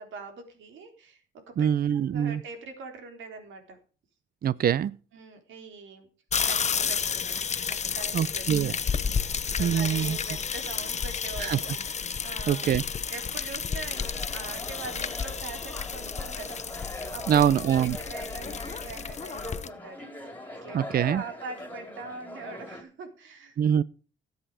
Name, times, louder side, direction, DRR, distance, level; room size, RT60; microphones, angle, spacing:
voice 1, 0.0-3.8 5.1-6.1 6.4-8.8 9.2-12.8 13.1-20.0 20.3-23.6, right 3 dB, 75° right, 3.8 m, -43 dB
voice 2, 1.6-2.4 4.4-5.0 8.1-8.8 9.6-10.2 11.4-11.6 12.5-12.8 17.3-18.0 20.7-21.2 23.6-23.8, right 9 dB, 50° right, 0.6 m, -24 dB
sound 1, 6.3-19.7, left 6 dB, 35° left, 0.9 m, -31 dB
sound 2, 13.9-22.8, left 1 dB, 10° left, 4.4 m, -41 dB
16.5 x 8.1 x 4.9 m
cardioid pair, 90°, 20 cm